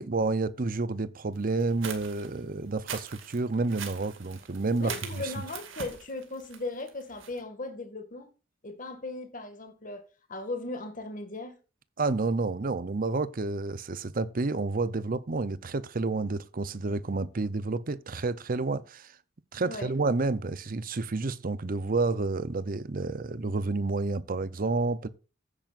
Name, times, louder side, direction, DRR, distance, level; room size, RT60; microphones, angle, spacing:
voice 1, 0.0-4.9 5.2-5.3 12.0-19.1 19.5-25.1, right 3 dB, 45° right, 0.7 m, -30 dB
sound 1, 1.6-7.4, right 7 dB, 75° right, 2.2 m, -42 dB
voice 2, 4.8-8.3 8.6-11.6 19.6-20.0, left 2 dB, 40° left, 2.0 m, -38 dB
15.0 x 8.9 x 2.5 m
head